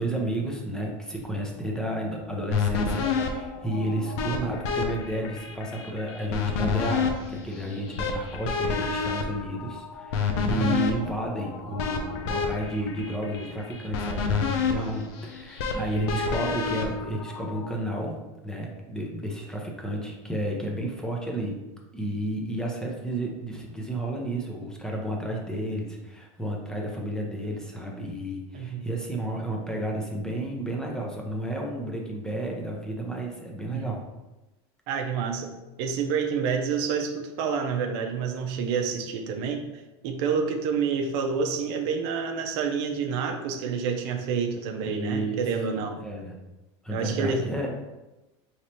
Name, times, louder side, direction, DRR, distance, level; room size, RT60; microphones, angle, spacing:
voice 1, 0.0-21.6 21.9-34.0 44.8-45.4 46.0-46.3 46.8-47.7, right 1 dB, 5° left, -1 dB, 0.8 m, -32 dB
sound 1, 2.5-17.8, left 5 dB, 75° left, 0.6 m, -29 dB
voice 2, 10.3-10.8 28.5-28.8 33.7-33.9 34.9-35.5 35.8-39.6 40.0-46.0 46.9-47.5, right 6 dB, 70° right, 4 dB, 0.6 m, -28 dB
4.8 x 3.2 x 2.9 m, 1.0 s
supercardioid pair, 115°, 14 cm